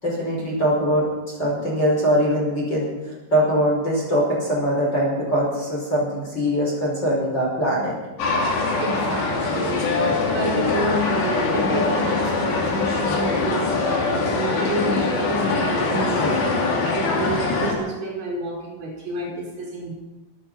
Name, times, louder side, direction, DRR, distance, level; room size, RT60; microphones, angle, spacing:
voice 1, 0.0-2.9 3.3-7.9, equal, 25° left, -4 dB, 5.7 m, -22 dB
sound 1, 8.2-17.7, left 3 dB, 80° left, 5.0 m, -23 dB
voice 2, 8.8-19.9, right 1 dB, 40° right, -4 dB, 5.7 m, -29 dB
23.0 x 10.5 x 5.7 m, 1.1 s
omnidirectional pair, 4.9 m